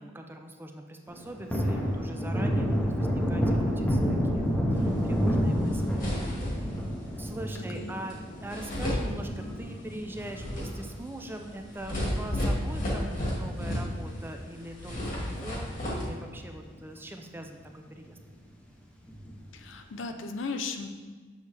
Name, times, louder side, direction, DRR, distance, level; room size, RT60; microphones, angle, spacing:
voice 1, 0.0-6.1 7.0-18.2, right 1 dB, 10° right, 4 dB, 0.5 m, -42 dB
Thunder, 1.1-11.8 12.2-12.3 12.7-14.2 14.4-14.6 14.9-15.7 16.1-16.2 16.6-16.7 19.1-19.6, equal, 10° left, 0.8 m, -30 dB
sound 1, 5.3-5.4 5.7-6.9 8.1-8.2 8.5-9.7 10.1-14.3 14.6-16.0, equal, 45° left, 1.8 m, -32 dB
voice 2, 7.6-7.9 19.5-20.9, left 4 dB, 75° left, 6 dB, 0.6 m, -36 dB
6.8 x 6.4 x 3.4 m, 1.4 s
head